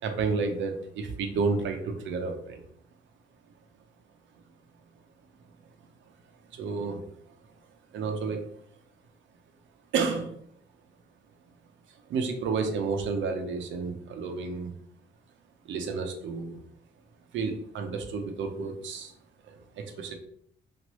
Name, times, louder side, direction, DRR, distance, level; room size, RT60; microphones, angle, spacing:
voice 1, 0.0-2.6 6.5-7.1 7.9-8.5 9.9-10.4 12.1-14.7 15.6-16.6 17.3-19.1 19.4-20.1, right 4 dB, 75° right, 5 dB, 0.6 m, -31 dB
3.0 x 2.5 x 3.0 m, 0.66 s
cardioid pair, 90°, 20 cm